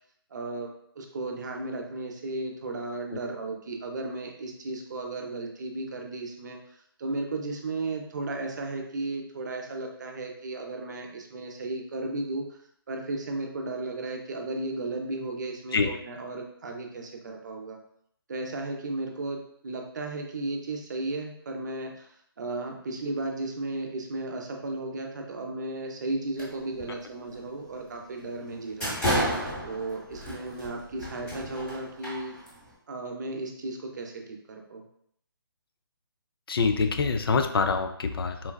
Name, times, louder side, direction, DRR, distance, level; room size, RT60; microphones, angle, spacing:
voice 1, 0.3-12.5 12.9-17.8 18.3-29.0 29.6-32.4 32.9-34.8, right 2 dB, 50° right, 2 dB, 0.5 m, -35 dB
sound 1, 26.4-26.8 27.2-27.4 28.0-28.1 28.5-32.7, equal, 10° left, 0.8 m, -32 dB
voice 2, 36.5-38.5, left 4 dB, 70° left, 7 dB, 0.4 m, -25 dB
3.8 x 2.2 x 2.2 m, 0.68 s
hypercardioid pair, 155°, 13 cm